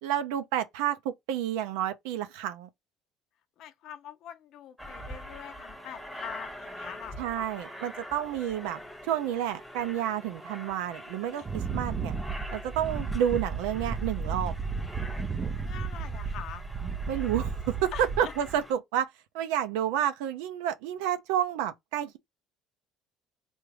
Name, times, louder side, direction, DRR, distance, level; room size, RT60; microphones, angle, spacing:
voice 1, 0.0-2.7 7.2-12.1 12.5-14.6 17.1-19.1 19.3-22.2, right 10 dB, 90° right, 0.5 m, -30 dB
voice 2, 3.6-7.5 11.3-11.4 15.6-16.6 17.9-18.3, left 9 dB, 65° left, 0.6 m, -44 dB
Aircraft, 4.8-18.7, equal, ahead, 1.1 m, -45 dB
Wind, 11.4-18.6, right 5 dB, 30° right, 0.5 m, -33 dB
3.5 x 2.5 x 3.2 m
supercardioid pair, 105°, 0 cm